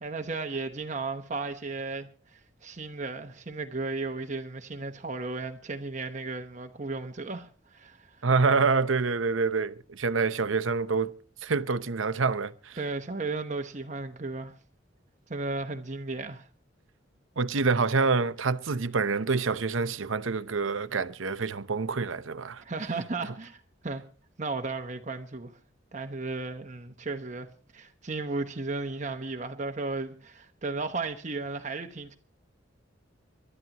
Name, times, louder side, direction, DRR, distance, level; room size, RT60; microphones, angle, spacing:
voice 1, 0.0-8.2 12.8-14.5 15.3-16.5 22.6-24.0 24.4-25.5 25.9-27.5 27.7-32.2, right 3 dB, 40° right, 1.0 m, -35 dB
voice 2, 8.2-11.1 11.4-12.8 17.4-22.6, right 4 dB, 85° right, 0.8 m, -26 dB
28.0 x 12.5 x 3.0 m
head